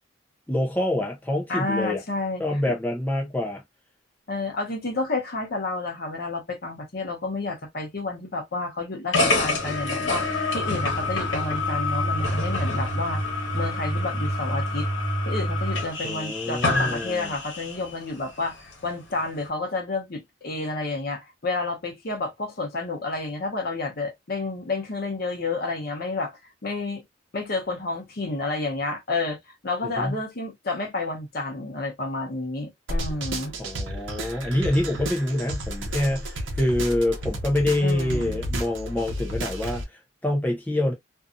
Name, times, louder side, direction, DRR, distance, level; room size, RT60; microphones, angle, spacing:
voice 1, 0.5-2.0 2.4-3.6 16.0-17.3 30.0-30.2 33.6-40.9, left 1 dB, 10° left, 0.4 m, -26 dB
voice 2, 1.5-2.4 2.7-2.8 4.3-13.2 13.5-14.9 15.3-18.6 18.8-26.3 26.6-27.0 27.3-29.4 29.6-33.6 37.8-38.4, left 3 dB, 50° left, 0.8 m, -30 dB
sound 1, 9.1-17.9, left 2 dB, 70° left, 1.2 m, -26 dB
sound 2, 32.9-39.8, right 1 dB, 80° right, 0.8 m, -32 dB
2.6 x 2.3 x 2.4 m
head